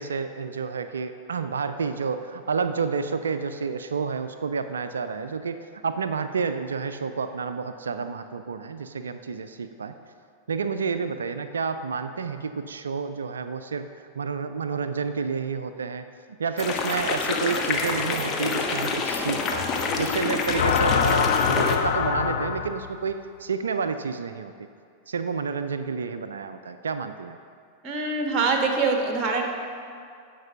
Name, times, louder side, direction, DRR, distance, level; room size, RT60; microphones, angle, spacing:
voice 1, 0.0-9.9 10.5-13.9 14.2-19.7 20.0-24.5 25.1-27.4, right 5 dB, 70° right, 10 dB, 0.4 m, -30 dB
sound 1, 16.6-21.8, left 4 dB, 30° left, 1.1 m, -27 dB
sound 2, 20.6-23.0, left 7 dB, 60° left, 0.6 m, -24 dB
voice 2, 27.8-29.5, right 4 dB, 30° right, 2 dB, 1.4 m, -24 dB
15.5 x 5.4 x 5.6 m, 2.3 s
figure-of-eight pair, 90°, 0 cm